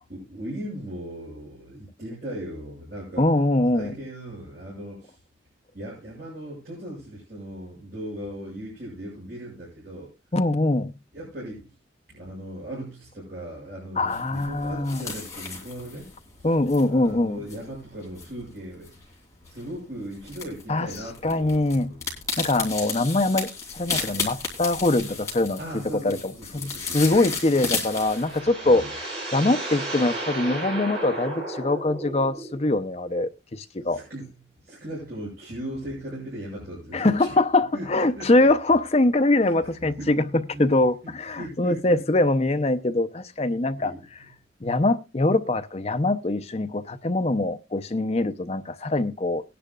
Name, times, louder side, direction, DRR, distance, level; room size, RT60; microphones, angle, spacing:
voice 1, 0.1-3.3 3.7-5.1 5.7-10.1 11.1-11.7 12.1-16.1 16.4-16.5 16.9-18.9 19.5-22.1 25.6-27.3 28.6-28.9 33.9-34.3 34.6-37.3 37.7-38.3 39.4-40.1 40.5-40.7 41.0-42.0 43.8-44.3, right 1 dB, 50° right, 6.6 m, -38 dB
voice 2, 3.2-3.9 10.3-10.9 14.0-15.1 16.4-17.4 20.7-20.9 21.2-22.0 22.4-28.8 29.3-34.0 36.9-43.9 44.6-49.4, left 2 dB, 35° left, 0.6 m, -23 dB
sound 1, 14.1-28.4, left 4 dB, 15° left, 3.1 m, -34 dB
sound 2, 27.6-32.7, right 2 dB, 30° right, 5.8 m, -34 dB
19.5 x 10.5 x 2.4 m
head